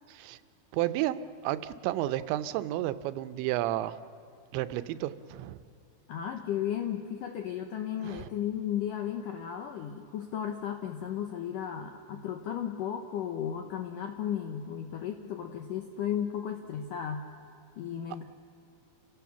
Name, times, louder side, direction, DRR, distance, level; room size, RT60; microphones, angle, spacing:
voice 1, 0.7-4.0 4.5-5.6 8.0-8.3, right 14 dB, 90° right, 12 dB, 3.0 m, -32 dB
voice 2, 6.1-17.3 17.8-18.2, left 9 dB, 75° left, 5 dB, 1.9 m, -34 dB
29.5 x 16.5 x 7.0 m, 2.7 s
omnidirectional pair, 5.0 m